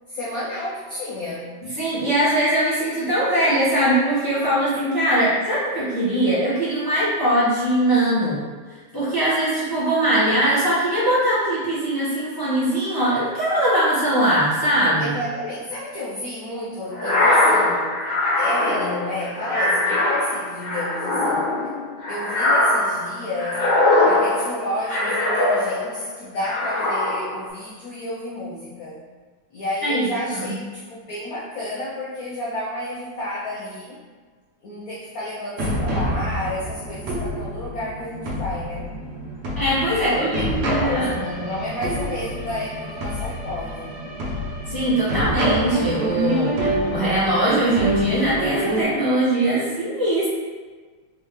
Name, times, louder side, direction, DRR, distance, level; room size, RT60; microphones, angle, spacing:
voice 1, 0.1-1.6 14.9-17.9 18.4-21.5 22.1-23.7 24.0-29.0 29.5-34.0 34.6-38.9 40.0-44.0, left 1 dB, 80° left, -6 dB, 0.8 m, -31 dB
voice 2, 1.8-8.4 8.9-15.1 29.8-30.1 30.3-30.5 39.6-41.1 44.7-50.3, right 1 dB, 25° left, -11 dB, 0.5 m, -21 dB
sound 1, 16.9-26.0 26.4-27.4, left 2 dB, 55° left, 1.5 m, -21 dB
sound 2, 35.6-48.8, right 1 dB, 65° right, 1.1 m, -27 dB
3.5 x 3.2 x 3.0 m, 1.4 s
omnidirectional pair, 2.2 m